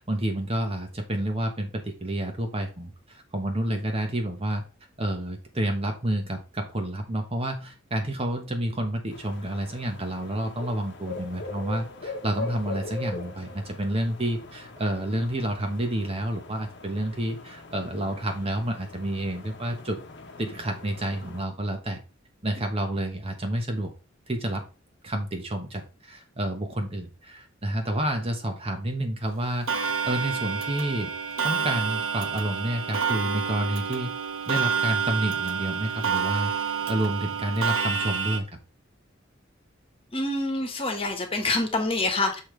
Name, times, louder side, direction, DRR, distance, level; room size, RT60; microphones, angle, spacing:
voice 1, 0.0-4.6 5.0-20.0 20.4-22.0 22.4-23.9 24.3-24.7 25.0-31.1 31.4-34.1 34.5-36.5 36.9-38.5, right 1 dB, 30° right, 4 dB, 1.2 m, -29 dB
sound 1, 9.1-21.4, left 3 dB, 60° left, 1.1 m, -41 dB
Clock, 29.7-38.4, right 6 dB, 90° right, 1.1 m, -28 dB
voice 2, 40.1-42.4, left 2 dB, 30° left, 4 dB, 1.5 m, -26 dB
6.6 x 5.6 x 3.3 m, 0.31 s
head